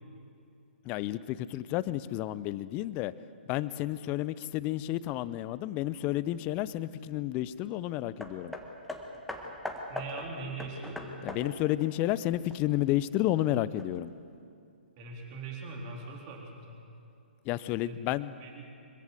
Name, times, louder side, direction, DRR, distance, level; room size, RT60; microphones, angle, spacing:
voice 1, 0.8-3.1 3.5-8.5 11.2-14.1 17.5-18.3, left 14 dB, 25° left, 17 dB, 0.6 m, -31 dB
Hammer, 8.2-12.9 13.8-13.9, left 1 dB, ahead, 1.7 m, -41 dB
voice 2, 9.9-11.0 15.0-16.9 17.8-18.0 18.2-18.7, right 3 dB, 35° right, 0 dB, 3.8 m, -41 dB
25.0 x 15.5 x 8.0 m, 2.5 s
figure-of-eight pair, 130°, 6 cm